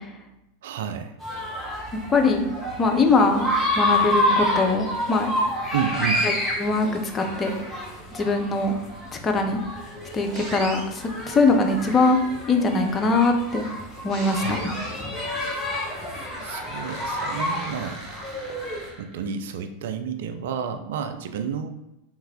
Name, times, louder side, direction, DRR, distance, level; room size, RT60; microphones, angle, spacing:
voice 1, 0.6-1.1 5.7-6.2 14.2-14.6 16.4-18.0 19.0-21.7, right 7 dB, 60° right, 7 dB, 0.3 m, -30 dB
sound 1, 1.2-18.9, left 1 dB, 5° left, 1.1 m, -29 dB
voice 2, 2.1-2.5 2.8-3.5 3.7-5.3 6.2-6.3 6.6-6.9 7.1-7.5 8.1-8.7 9.2-9.6 10.1-12.2 12.5-13.6 14.0-14.7, left 3 dB, 25° left, 4 dB, 0.6 m, -21 dB
sound 2, 10.3-10.8 11.9-12.6 14.1-15.1 15.8-19.3, right 1 dB, 30° right, 1.1 m, -40 dB
3.3 x 3.1 x 3.5 m, 0.91 s
figure-of-eight pair, 85°, 0 cm